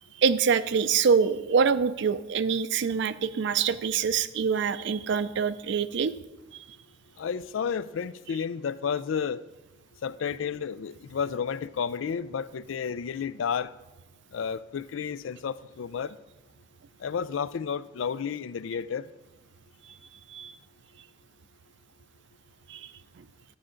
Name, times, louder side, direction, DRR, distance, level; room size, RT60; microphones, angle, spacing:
voice 1, 0.2-6.1 20.3-20.5 22.7-22.8 23.2-23.3, right 6 dB, 65° right, 0.4 m, -25 dB
voice 2, 7.2-9.4 10.0-13.7 14.3-16.2 17.0-19.1, left 6 dB, 85° left, 0.4 m, -31 dB
12.0 x 9.8 x 3.8 m
head